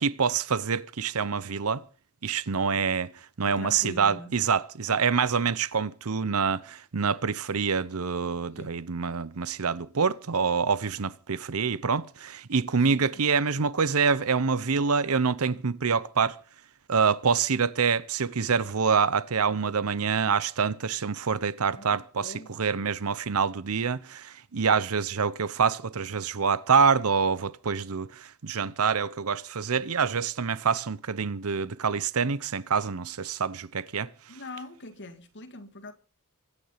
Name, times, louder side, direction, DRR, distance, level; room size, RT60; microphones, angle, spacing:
voice 1, 0.0-1.8 2.2-3.1 3.4-16.4 16.9-34.1, right 5 dB, 75° right, 0.8 m, -26 dB
voice 2, 3.5-4.3 8.6-8.8 12.8-13.2 21.7-22.5 34.3-35.9, left 2 dB, 55° left, 2.0 m, -43 dB
25.0 x 9.9 x 5.8 m
head